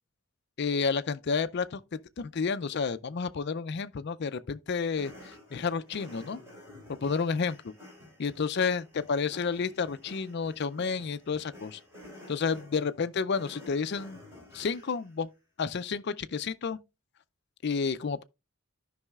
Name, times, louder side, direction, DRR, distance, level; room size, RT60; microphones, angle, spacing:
voice 1, 0.6-6.4 6.9-7.6 8.2-11.8 12.3-14.2 14.5-15.3 15.6-16.8 17.6-18.2, left 5 dB, 50° left, 0.4 m, -31 dB
sound 1, 4.9-15.1, left 1 dB, 15° right, 3.6 m, -51 dB
13.0 x 5.4 x 2.3 m
head